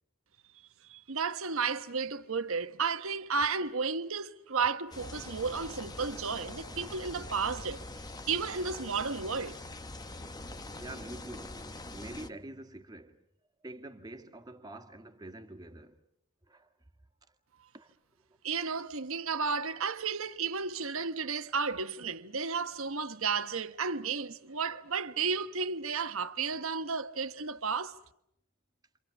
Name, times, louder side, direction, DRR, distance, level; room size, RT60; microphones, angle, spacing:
voice 1, 0.9-7.8 8.3-9.6 18.4-27.9, right 5 dB, 65° right, 1.2 m, -33 dB
sound 1, 4.9-12.3, left 2 dB, 20° left, 1.1 m, -44 dB
voice 2, 10.8-13.2 13.6-16.0 16.5-16.7 17.7-17.9, right 1 dB, 20° right, 1.8 m, -46 dB
29.5 x 27.5 x 7.2 m
head